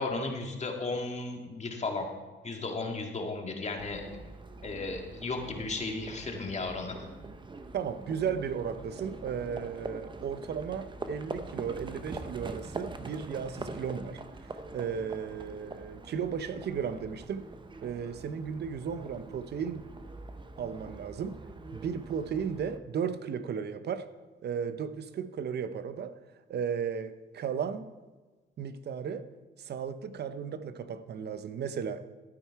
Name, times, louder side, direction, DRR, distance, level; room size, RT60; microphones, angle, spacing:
voice 1, 0.0-2.1 2.4-4.0 4.6-7.1, left 3 dB, 35° left, 2.0 m, -34 dB
Livestock farm animals working animals, 3.8-22.8, right 3 dB, 25° right, 0.8 m, -44 dB
voice 2, 7.7-14.2 14.7-17.4 17.8-19.9 20.6-21.4 21.7-24.1 24.4-26.1 26.5-27.9 28.6-29.3 29.6-32.1, right 7 dB, 55° right, 0.8 m, -35 dB
12.5 x 9.0 x 4.7 m
cardioid pair, 90°, 20 cm